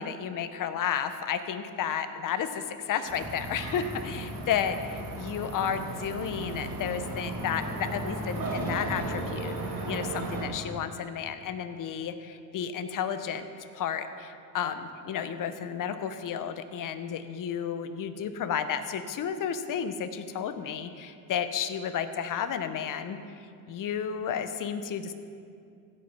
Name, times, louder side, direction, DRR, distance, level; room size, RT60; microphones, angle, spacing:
voice 1, 0.0-4.8 5.1-9.5 9.9-13.5 13.7-23.2 23.7-25.1, left 8 dB, 45° left, 10 dB, 0.8 m, -32 dB
sound 1, 3.0-10.5, right 2 dB, 50° right, 2.3 m, -35 dB
15.5 x 5.3 x 5.7 m, 2.4 s
cardioid pair, 100°, 44 cm